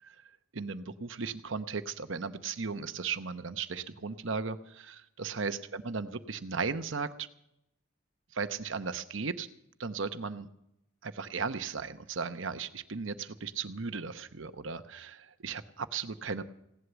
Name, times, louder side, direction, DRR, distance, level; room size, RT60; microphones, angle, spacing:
voice 1, 0.5-7.3 8.3-9.5 9.8-10.5 11.0-16.4, right 5 dB, 65° right, 10 dB, 0.9 m, -36 dB
17.0 x 11.5 x 7.0 m, 0.80 s
head